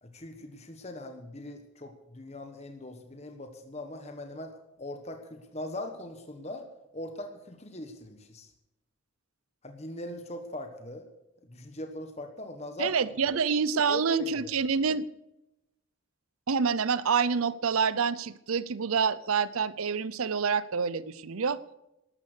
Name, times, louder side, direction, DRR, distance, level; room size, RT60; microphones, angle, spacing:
voice 1, 0.0-6.7 6.9-8.5 9.6-11.1 11.5-12.9 13.9-14.3, left 1 dB, 30° left, 6 dB, 1.3 m, -41 dB
voice 2, 12.8-15.0 16.5-21.6, right 5 dB, 85° right, 18 dB, 0.6 m, -27 dB
13.0 x 12.5 x 6.7 m, 0.91 s
head